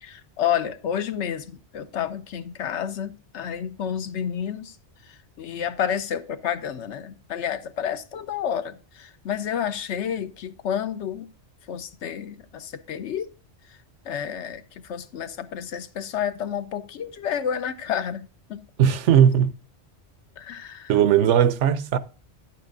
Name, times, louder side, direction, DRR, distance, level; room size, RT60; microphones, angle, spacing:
voice 1, 0.0-4.7 5.1-11.3 11.7-13.3 14.0-18.6 20.4-20.9, left 9 dB, 75° left, 1.0 m, -30 dB
voice 2, 18.8-19.5 20.9-22.0, right 9 dB, 80° right, 0.9 m, -18 dB
11.0 x 8.9 x 2.5 m
omnidirectional pair, 1.2 m